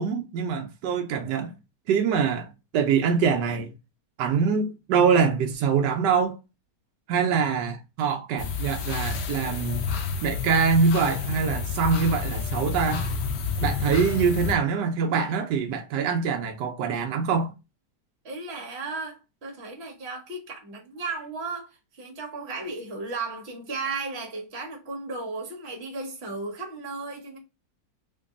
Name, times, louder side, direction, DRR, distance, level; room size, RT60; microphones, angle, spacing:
voice 1, 0.0-1.6 1.9-3.7 4.2-6.4 7.1-9.9 10.2-13.1 13.6-17.5, right 6 dB, 80° right, 1.2 m, -24 dB
sound 1, 8.4-14.5, left 5 dB, 80° left, 0.5 m, -30 dB
voice 2, 18.2-27.4, right 3 dB, 40° right, 1.2 m, -35 dB
2.9 x 2.6 x 3.5 m
omnidirectional pair, 1.8 m